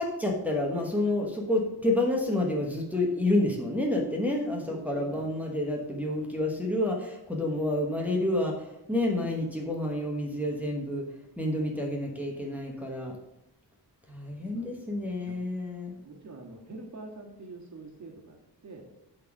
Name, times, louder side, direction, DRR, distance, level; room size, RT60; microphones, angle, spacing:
voice 1, 0.0-13.1 14.1-16.0, left 1 dB, 5° right, -1 dB, 1.0 m, -29 dB
voice 2, 4.7-5.3 14.4-15.3 15.9-18.8, right 3 dB, 45° right, 0 dB, 1.8 m, -46 dB
9.2 x 4.1 x 6.0 m, 0.88 s
wide cardioid pair, 175°, 40 cm